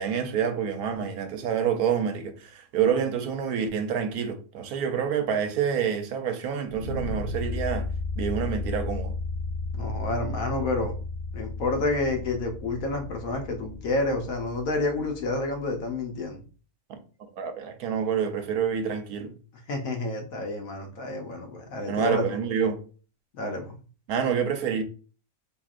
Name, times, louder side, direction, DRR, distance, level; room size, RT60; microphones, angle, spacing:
voice 1, 0.0-7.9 8.2-9.1 16.9-17.0 17.3-19.3 21.9-22.8 24.1-24.8, right 7 dB, 75° right, 1.1 m, -27 dB
sound 1, 6.7-15.7, left 3 dB, 30° left, 1.0 m, -34 dB
voice 2, 9.7-10.9 11.3-16.4 19.7-22.4 23.4-23.8, left 2 dB, 70° left, 1.2 m, -29 dB
4.5 x 3.0 x 2.4 m
omnidirectional pair, 1.6 m